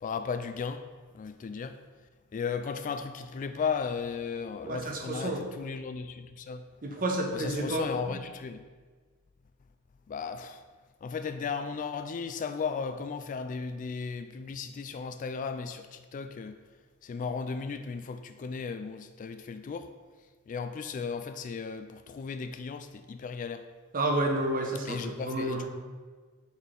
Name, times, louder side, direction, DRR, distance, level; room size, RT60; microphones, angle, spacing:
voice 1, 0.0-0.9 1.1-1.8 2.3-6.7 6.9-7.0 7.3-8.7 10.1-10.6 11.0-16.6 17.0-19.9 20.5-23.6 24.8-25.7, left 5 dB, 35° left, 10 dB, 0.3 m, -35 dB
voice 2, 4.6-5.4 6.8-7.9 23.9-25.7, right 1 dB, 40° right, 1 dB, 0.9 m, -30 dB
6.2 x 5.5 x 3.8 m, 1.4 s
head